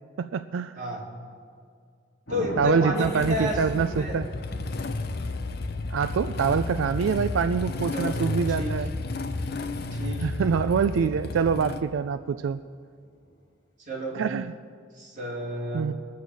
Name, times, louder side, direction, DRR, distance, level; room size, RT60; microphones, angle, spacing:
voice 1, 0.2-0.8 2.6-4.3 5.9-8.9 10.2-12.6 14.1-14.5 15.7-15.9, right 6 dB, 90° right, 12 dB, 0.4 m, -25 dB
Thunder, 2.3-10.3 13.0-13.4, equal, 80° left, 4.3 m, -42 dB
voice 2, 2.3-4.2 7.9-8.2 8.5-8.7 9.9-10.2 13.9-14.2 15.0-15.9, equal, 40° right, -3 dB, 2.3 m, -31 dB
Motorcycle / Engine starting, 3.0-11.8, left 2 dB, 55° left, 0.6 m, -32 dB
21.0 x 7.1 x 6.2 m, 2.2 s
head